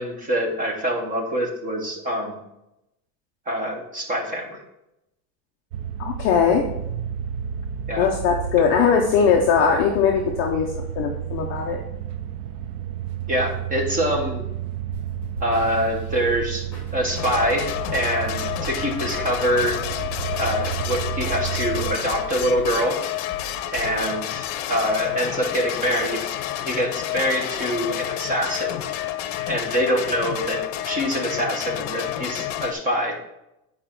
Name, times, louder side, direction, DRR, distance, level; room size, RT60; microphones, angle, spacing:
voice 1, 0.0-2.4 3.5-4.6 7.9-8.1 13.3-14.4 15.4-19.8 20.4-23.0 23.7-26.3 26.6-28.8 29.5-33.2, equal, 15° right, 1 dB, 1.0 m, -25 dB
sound 1, 5.7-22.0, right 10 dB, 50° right, 0.5 m, -32 dB
voice 2, 6.0-6.6 8.0-11.8, left 6 dB, 30° left, 0 dB, 0.4 m, -20 dB
sound 2, 14.9-24.5, left 2 dB, 5° left, 2.7 m, -40 dB
sound 3, 17.2-32.7, left 12 dB, 60° left, 0.7 m, -29 dB
8.8 x 5.0 x 4.4 m, 0.88 s
cardioid pair, 175°, 47 cm